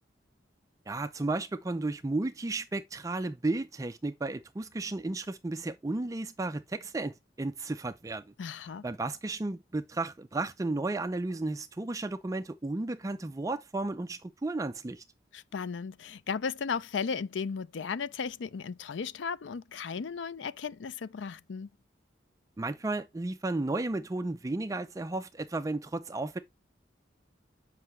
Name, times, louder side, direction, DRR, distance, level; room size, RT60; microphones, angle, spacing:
voice 1, 0.9-8.3 8.8-15.0 22.6-26.4, right 2 dB, 20° right, 0.4 m, -33 dB
voice 2, 8.4-8.8 15.3-21.7, left 5 dB, 80° left, 0.5 m, -35 dB
7.7 x 5.5 x 3.1 m
head